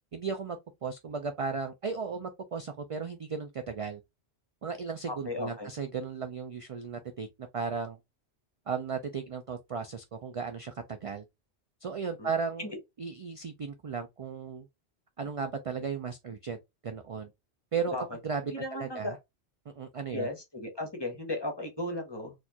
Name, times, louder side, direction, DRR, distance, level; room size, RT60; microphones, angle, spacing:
voice 1, 0.1-4.0 4.6-8.0 8.7-11.3 11.8-12.7 13.0-14.7 15.2-16.6 16.8-17.3 17.7-19.2 19.7-20.3, right 5 dB, 55° right, 0.3 m, -35 dB
voice 2, 5.1-5.7 12.2-12.3 12.6-12.7 17.9-18.0 18.5-19.2 20.1-22.3, left 1 dB, 25° left, 0.9 m, -35 dB
4.2 x 2.4 x 2.8 m
omnidirectional pair, 1.1 m